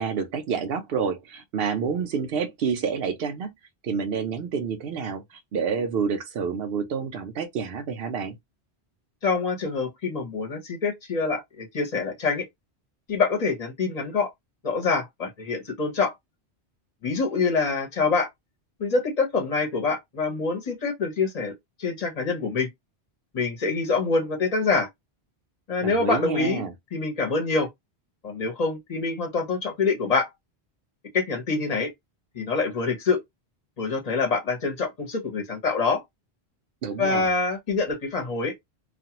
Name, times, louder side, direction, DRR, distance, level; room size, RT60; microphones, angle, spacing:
voice 1, 0.0-3.5 3.8-8.4 25.8-26.7 36.8-37.3, right 6 dB, 65° right, 0.8 m, -28 dB
voice 2, 9.2-12.4 13.1-14.3 14.6-16.1 17.0-18.3 18.8-21.5 21.8-22.7 23.3-24.9 25.7-26.6 26.9-27.7 28.2-30.3 31.1-31.9 32.3-33.2 33.8-36.0 37.0-38.5, left 4 dB, 40° left, 0.9 m, -25 dB
2.5 x 2.3 x 2.8 m
omnidirectional pair, 1.1 m